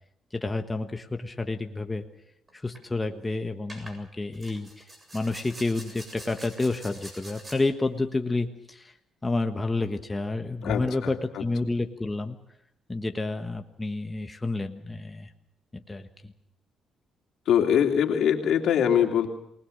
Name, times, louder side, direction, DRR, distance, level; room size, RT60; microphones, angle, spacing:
voice 1, 0.3-2.0 2.5-8.9 9.2-12.4 12.9-15.3 15.7-16.3, left 2 dB, 15° left, 6 dB, 1.5 m, -30 dB
sound 1, 2.5-2.8 3.7-4.0 4.3-7.6, right 1 dB, 25° right, 7.4 m, -45 dB
voice 2, 10.6-11.4 17.5-19.3, left 9 dB, 75° left, 4 dB, 3.0 m, -23 dB
28.0 x 20.0 x 6.7 m, 0.73 s
cardioid pair, 90°, 0 cm